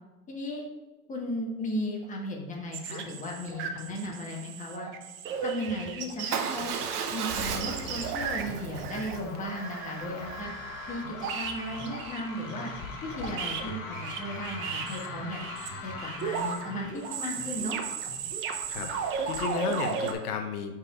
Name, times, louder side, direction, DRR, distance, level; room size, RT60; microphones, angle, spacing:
voice 1, 0.3-0.7 1.1-4.9 5.4-6.7 7.1-10.5 10.9-12.7 13.1-15.4 15.8-17.8, left 1 dB, 15° left, -1 dB, 1.4 m, -35 dB
sound 1, 2.7-20.1, right 6 dB, 25° right, 0.6 m, -36 dB
Motorcycle / Engine starting / Idling, 6.3-10.4, right 6 dB, 90° right, 0.9 m, -35 dB
sound 2, 8.7-19.7, left 4 dB, 50° left, 1.5 m, -43 dB
voice 2, 18.7-20.7, left 6 dB, 85° left, 5 dB, 0.9 m, -33 dB
4.9 x 4.2 x 5.1 m, 1.2 s
hypercardioid pair, 125°, 45 cm